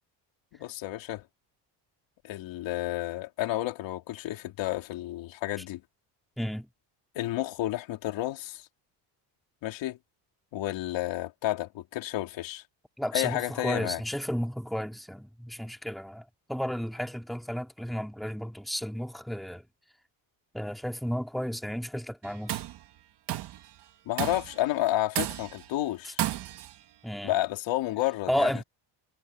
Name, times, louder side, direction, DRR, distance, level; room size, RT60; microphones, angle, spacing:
voice 1, 0.5-1.3 2.2-5.8 7.2-8.7 9.6-10.0 10.5-12.6 13.1-14.0 24.1-26.2 27.2-28.6, left 15 dB, 70° left, 3.4 m, -31 dB
voice 2, 6.4-6.7 13.0-19.6 20.5-22.6 27.0-27.3 28.3-28.6, equal, ahead, 2.7 m, -32 dB
Tools, 22.2-22.8 23.3-23.6 24.2-24.6 25.1-25.7 26.2-26.7, right 13 dB, 60° right, 2.0 m, -32 dB
cardioid pair, 165°, 46 cm